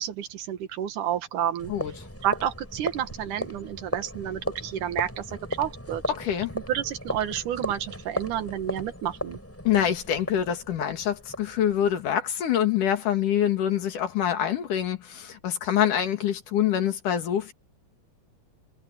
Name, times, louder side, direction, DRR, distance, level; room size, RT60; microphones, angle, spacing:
voice 1, 0.0-1.7 2.2-6.0 6.5-9.4, right 10 dB, 80° right, 2.9 m, -30 dB
sound 1, 1.6-12.2, equal, 5° left, 6.3 m, -36 dB
voice 2, 6.2-6.5 9.7-17.5, left 10 dB, 80° left, 3.6 m, -25 dB
omnidirectional pair, 3.6 m